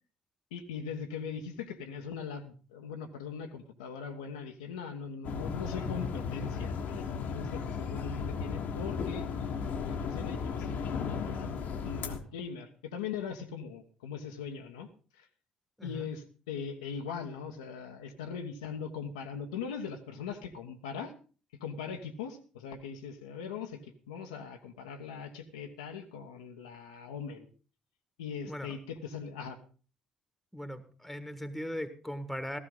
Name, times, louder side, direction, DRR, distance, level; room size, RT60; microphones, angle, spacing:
voice 1, 0.5-9.3 9.7-14.9 15.1-15.3 15.8-21.1 21.6-23.8 24.1-27.5 28.2-29.6, left 6 dB, 75° left, 4 dB, 1.2 m, -40 dB
sound 1, 5.2-12.2, left 6 dB, 50° left, 1.4 m, -35 dB
voice 2, 28.5-28.8 30.5-32.6, equal, 5° left, 11 dB, 1.7 m, -39 dB
15.0 x 14.5 x 3.9 m, 0.38 s
figure-of-eight pair, 50°, 3 cm